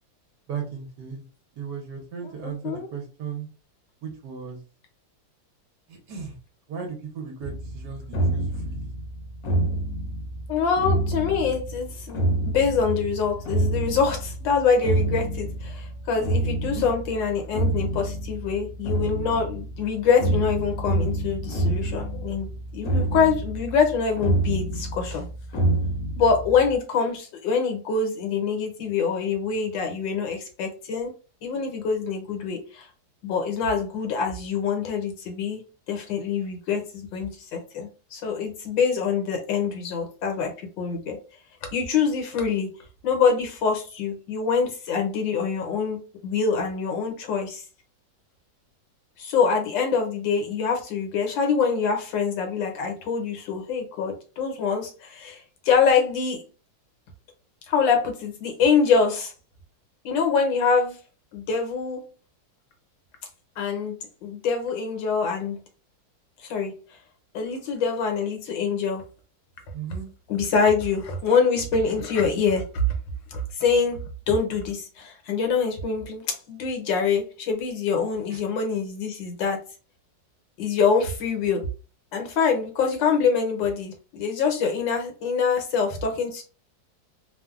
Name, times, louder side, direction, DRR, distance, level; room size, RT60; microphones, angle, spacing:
voice 1, 0.5-1.2 1.6-3.5 4.0-4.6 5.9-6.3 6.7-8.0 8.3-8.9 16.8-16.9 69.7-70.1 78.3-78.4, right 6 dB, 65° right, 1 dB, 1.4 m, -36 dB
voice 2, 2.4-2.9 10.5-25.2 26.1-31.1 31.4-32.9 33.2-35.6 35.9-41.2 41.7-42.7 43.0-47.6 49.2-56.4 57.7-59.3 60.0-61.0 61.3-62.0 63.6-65.6 66.4-66.7 67.3-69.0 70.3-72.6 73.3-74.0 74.3-79.6 80.6-81.6 82.1-86.4, left 5 dB, 75° left, 4 dB, 1.5 m, -25 dB
sound 1, 7.4-26.8, right 1 dB, 60° left, 1.1 m, -27 dB
3.4 x 2.1 x 2.4 m, 0.35 s
omnidirectional pair, 2.0 m